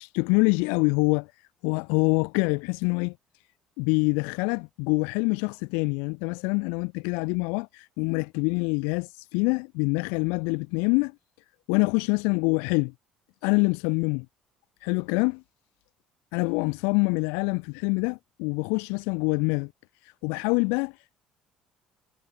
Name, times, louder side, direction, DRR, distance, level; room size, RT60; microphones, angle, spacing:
voice 1, 0.0-3.1 3.8-11.1 11.7-12.9 13.4-14.2 14.8-15.4 16.3-19.7 20.0-21.1, left 35 dB, 75° left, 0.5 m, -25 dB
hypercardioid pair, 65°, 3 cm